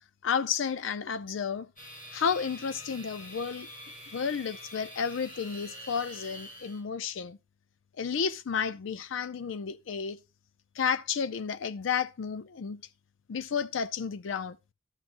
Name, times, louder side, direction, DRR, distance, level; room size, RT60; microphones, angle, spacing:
voice 1, 0.2-1.7 2.1-3.7 4.1-7.4 8.0-10.2 10.8-12.8 13.3-14.6, left 6 dB, 75° left, 0.5 m, -32 dB
sound 1, 1.8-6.8, equal, 45° left, 3.2 m, -46 dB
12.5 x 7.3 x 2.5 m
head